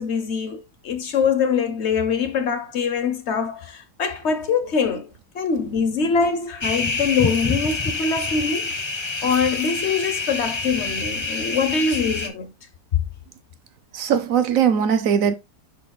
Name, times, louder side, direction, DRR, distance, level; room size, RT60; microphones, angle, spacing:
voice 1, 0.0-8.7 9.2-12.5, left 5 dB, 50° left, 0.9 m, -23 dB
sound 1, 6.6-12.3, left 3 dB, 25° left, 0.7 m, -27 dB
voice 2, 13.9-15.3, right 8 dB, 60° right, 1.0 m, -20 dB
11.0 x 4.1 x 2.3 m
omnidirectional pair, 1.8 m